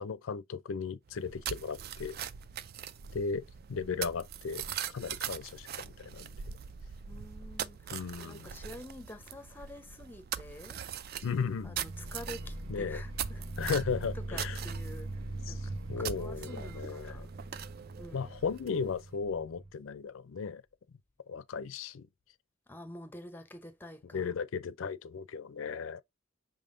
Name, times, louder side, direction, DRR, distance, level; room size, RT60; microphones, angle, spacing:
voice 1, 0.0-2.2 3.1-4.6 4.9-6.3 7.9-8.5 11.2-11.8 12.7-13.0 13.6-14.6 15.5-15.6 15.9-17.3 18.1-20.6 21.3-22.1 24.1-26.0, left 5 dB, 80° left, 0.4 m, -36 dB
sound 1, 1.1-19.0, right 9 dB, 50° right, 0.3 m, -42 dB
voice 2, 7.0-10.8 11.6-13.5 14.1-17.3 18.0-18.3 22.7-24.3, left 1 dB, 10° left, 0.6 m, -48 dB
sound 2, 11.8-19.7, right 2 dB, 85° right, 0.7 m, -41 dB
5.6 x 3.5 x 2.5 m
head